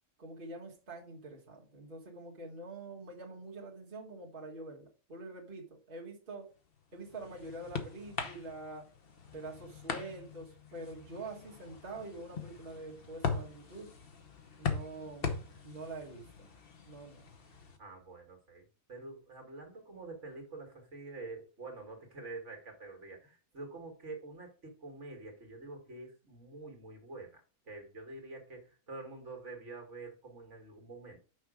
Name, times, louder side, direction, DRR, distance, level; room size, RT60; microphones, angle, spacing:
voice 1, 0.2-6.5 6.9-8.9 9.3-13.9 14.6-15.3 15.6-16.5 16.9-17.3, right 2 dB, 40° right, -3 dB, 1.7 m, -46 dB
sound 1, 6.7-17.8, left 5 dB, 45° left, 1.2 m, -41 dB
voice 2, 17.8-27.4 27.7-31.2, right 3 dB, 60° right, 2 dB, 2.1 m, -47 dB
6.3 x 5.1 x 4.9 m, 0.37 s
omnidirectional pair, 1.4 m